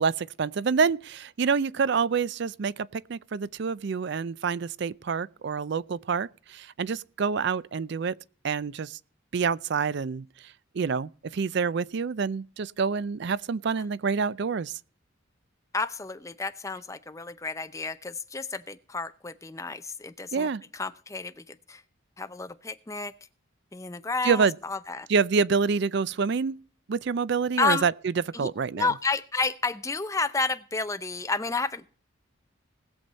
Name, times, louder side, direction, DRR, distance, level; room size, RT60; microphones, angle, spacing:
voice 1, 0.0-8.1 8.4-9.0 9.3-10.3 10.7-14.7 20.3-20.6 24.2-24.5 25.1-26.6 26.9-28.9, right 5 dB, 55° right, 0.4 m, -27 dB
voice 2, 15.7-20.5 20.7-21.8 22.2-23.1 23.7-25.1 27.6-27.8 28.3-31.9, left 4 dB, 15° left, 0.6 m, -31 dB
19.5 x 7.1 x 4.0 m
head